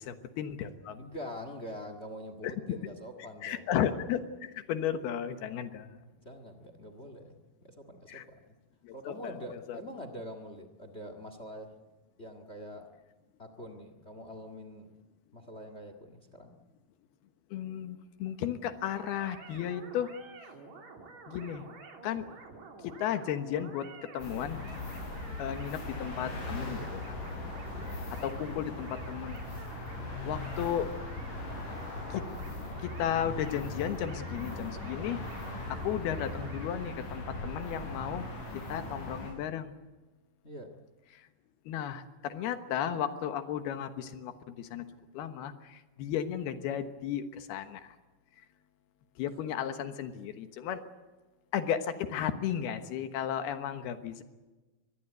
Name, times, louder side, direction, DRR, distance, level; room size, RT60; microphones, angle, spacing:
voice 1, 0.1-1.0 2.4-2.8 3.4-6.0 8.1-8.2 8.8-9.3 9.7-9.8 17.5-20.1 21.3-21.7 22.0-22.3 22.8-24.6 25.4-27.2 28.1-29.4 29.7-29.9 30.2-30.9 32.1-32.3 32.8-35.2 35.8-38.3 38.7-39.7 41.1-41.3 41.7-44.9 45.1-48.0 49.2-50.8 51.5-54.2, left 9 dB, 85° left, 9 dB, 3.2 m, -34 dB
voice 2, 0.9-3.7 6.2-8.5 8.9-11.7 12.2-12.8 13.4-14.9 15.3-16.6 27.7-28.0 40.4-40.7, equal, 40° left, 9 dB, 0.8 m, -44 dB
sound 1, 18.9-36.7, right 4 dB, 50° right, 4.2 m, -50 dB
sound 2, 24.2-39.3, left 2 dB, 60° left, 7.1 m, -39 dB
24.5 x 20.5 x 8.0 m, 1.2 s
omnidirectional pair, 4.4 m